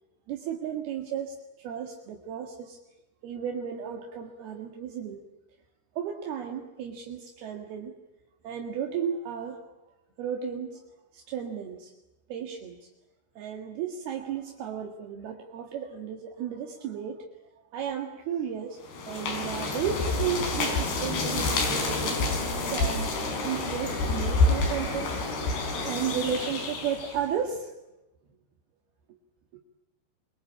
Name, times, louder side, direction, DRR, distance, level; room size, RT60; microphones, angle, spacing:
voice 1, 0.3-2.8 3.2-5.2 6.0-7.9 8.4-9.6 10.2-10.8 11.1-11.9 12.3-12.9 13.4-17.3 17.7-18.8 19.1-22.3 22.7-23.2 23.4-25.1 25.8-27.7 29.5-29.6, right 8 dB, 70° right, 2 dB, 3.7 m, -33 dB
sound 1, 18.8-27.3, left 3 dB, 75° left, 6.8 m, -28 dB
25.0 x 24.0 x 8.7 m, 1.0 s
omnidirectional pair, 4.8 m